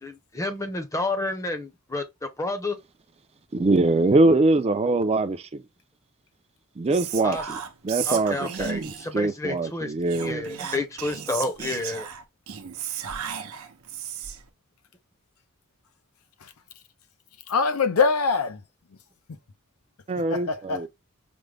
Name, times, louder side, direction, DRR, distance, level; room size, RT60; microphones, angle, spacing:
voice 1, 0.0-2.8 7.2-7.4 8.1-9.9 10.2-12.1, left 2 dB, 15° left, 0.7 m, -30 dB
voice 2, 3.5-5.6 6.8-7.6 7.8-10.5 20.1-20.9, right 2 dB, 30° right, 0.4 m, -23 dB
Whispering, 6.9-9.2 10.1-14.5, right 8 dB, 80° right, 0.7 m, -35 dB
voice 3, 17.5-18.6 20.3-20.9, left 5 dB, 85° left, 0.6 m, -23 dB
5.1 x 2.1 x 3.3 m
head